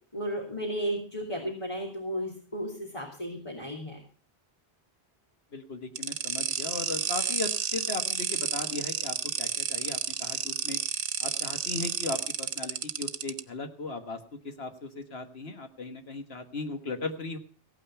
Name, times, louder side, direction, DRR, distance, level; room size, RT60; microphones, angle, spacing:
voice 1, 0.1-4.0, equal, 30° left, -3 dB, 3.1 m, -34 dB
voice 2, 5.5-10.8 11.2-17.4, left 3 dB, 65° left, 7 dB, 1.6 m, -37 dB
sound 1, 6.0-13.4, right 8 dB, 80° right, 1.1 m, -31 dB
16.0 x 8.9 x 5.7 m, 0.40 s
omnidirectional pair, 1.1 m